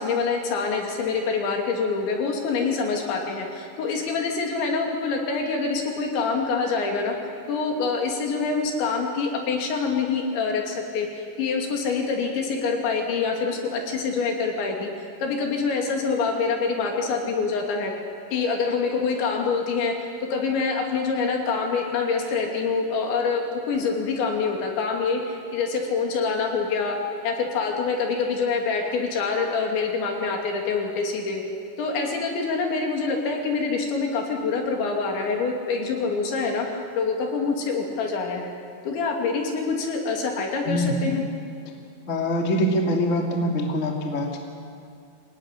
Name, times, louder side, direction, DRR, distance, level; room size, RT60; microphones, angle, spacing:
voice 1, 0.0-7.1 7.5-14.9 15.2-17.9 18.3-27.0 27.2-31.4 31.8-36.7 37.0-38.5 38.8-41.2, left 4 dB, 70° left, 1 dB, 5.0 m, -26 dB
voice 2, 40.6-41.1 42.1-44.4, equal, 25° left, 1 dB, 1.8 m, -24 dB
26.0 x 18.0 x 9.9 m, 2.4 s
omnidirectional pair, 5.4 m